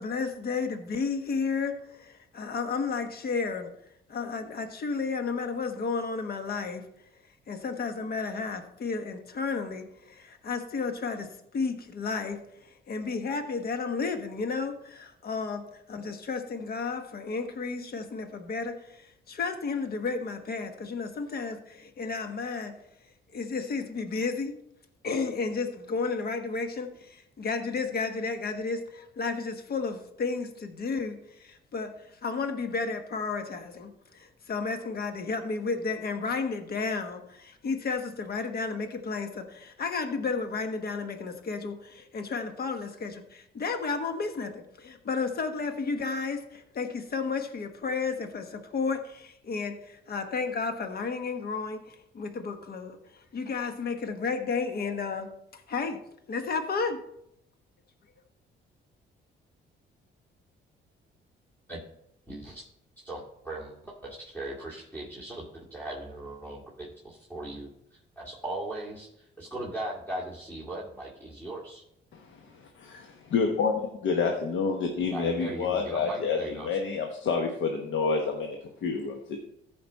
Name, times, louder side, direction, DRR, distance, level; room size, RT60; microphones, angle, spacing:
voice 1, 0.0-3.7 4.1-6.8 7.5-11.3 11.5-22.7 23.3-24.5 25.0-31.9 32.2-53.0 53.3-56.0 56.3-57.0, left 4 dB, 50° left, 7 dB, 1.2 m, -32 dB
voice 2, 62.3-62.6 63.0-71.8 75.1-76.8, right 1 dB, 10° left, -5 dB, 2.4 m, -39 dB
voice 3, 72.8-78.6 78.8-79.2, left 5 dB, 75° left, 3 dB, 1.1 m, -28 dB
14.5 x 5.2 x 4.1 m, 0.77 s
cardioid pair, 90°, 20 cm